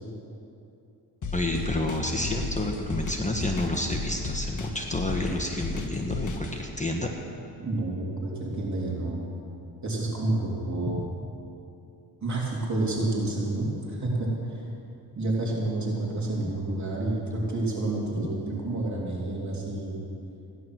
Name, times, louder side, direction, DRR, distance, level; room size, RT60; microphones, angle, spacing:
sound 1, 1.2-6.5, left 3 dB, 45° left, 1.5 m, -33 dB
voice 1, 1.3-7.1 10.9-11.0 16.4-16.5, left 1 dB, 20° left, 1 dB, 1.3 m, -29 dB
voice 2, 7.6-9.2 9.8-11.1 12.2-14.6 15.1-20.0, right 2 dB, 45° right, -3 dB, 3.3 m, -29 dB
16.0 x 11.0 x 6.2 m, 2.7 s
cardioid pair, 90°, 41 cm